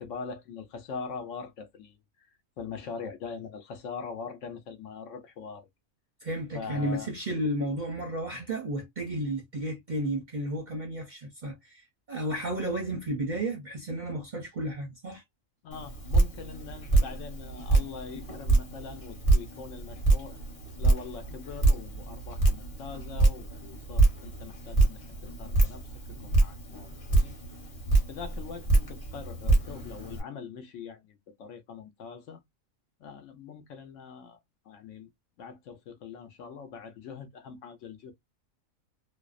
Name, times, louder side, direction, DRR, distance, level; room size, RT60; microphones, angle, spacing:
voice 1, 0.0-2.0 2.6-5.7 6.5-7.1 15.6-20.4 20.8-25.0 25.4-25.8 26.1-27.4 28.1-32.4 33.0-34.4 34.7-35.1 35.4-38.1, left 5 dB, 70° left, 0.9 m, -42 dB
voice 2, 6.2-15.2, right 1 dB, 50° right, 0.6 m, -33 dB
Drip, 15.7-30.2, right 2 dB, 30° left, 0.7 m, -26 dB
2.6 x 2.0 x 2.3 m
omnidirectional pair, 1.4 m